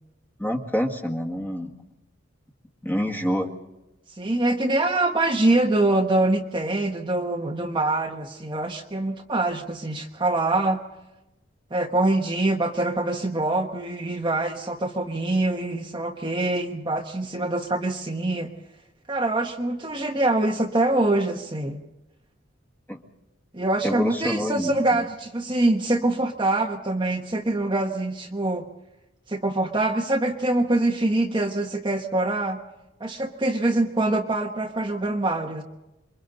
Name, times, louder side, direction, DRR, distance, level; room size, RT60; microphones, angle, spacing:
voice 1, 0.4-1.7 2.8-3.5 22.9-23.0 23.8-25.1, equal, 10° left, 2 dB, 1.9 m, -27 dB
voice 2, 4.2-10.8 11.7-18.5 19.1-21.8 23.5-28.7 29.3-32.6 33.0-35.6, right 2 dB, 25° right, 1 dB, 1.2 m, -24 dB
28.0 x 23.5 x 4.0 m, 0.98 s
head